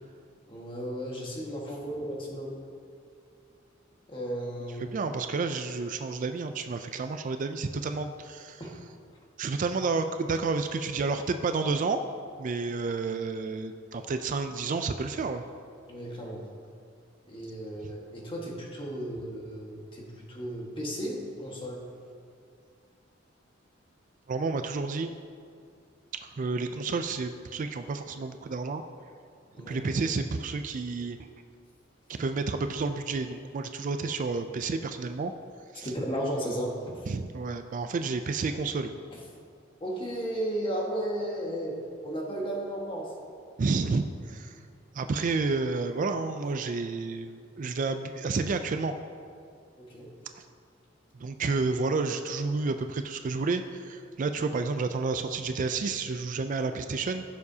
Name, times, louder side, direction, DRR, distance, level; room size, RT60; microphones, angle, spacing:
voice 1, 0.5-2.6 4.1-5.0 8.6-8.7 15.9-16.4 17.3-21.8 29.5-29.8 35.8-36.7 39.1-39.2 39.8-41.8 42.0-43.1 49.8-50.1, right 1 dB, 25° left, -2 dB, 1.6 m, -34 dB
voice 2, 4.9-8.6 9.4-12.0 12.4-15.4 24.3-25.1 26.2-28.8 29.7-31.2 32.2-35.3 35.7-35.9 37.1-38.9 43.6-44.6 44.9-48.9 51.2-57.2, right 4 dB, 40° right, 8 dB, 0.4 m, -30 dB
15.0 x 7.0 x 2.8 m, 2.3 s
head